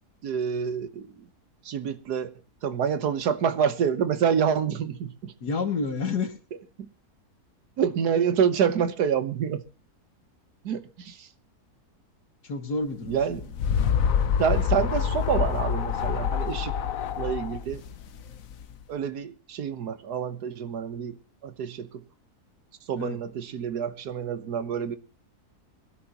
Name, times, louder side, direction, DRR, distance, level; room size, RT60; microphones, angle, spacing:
voice 1, 0.2-1.3 1.6-2.3 2.6-5.3 6.8-6.9 7.8-9.6 10.6-11.3 13.1-13.5 14.4-16.7 17.2-17.8 18.9-21.1 21.4-22.0 22.9-25.0, right 7 dB, 80° right, 1.6 m, -27 dB
voice 2, 5.4-6.4 12.4-13.4 23.0-23.2, left 4 dB, 85° left, 2.6 m, -29 dB
sound 1, 13.1-18.7, left 8 dB, 60° left, 1.2 m, -26 dB
22.5 x 12.0 x 2.9 m
omnidirectional pair, 1.7 m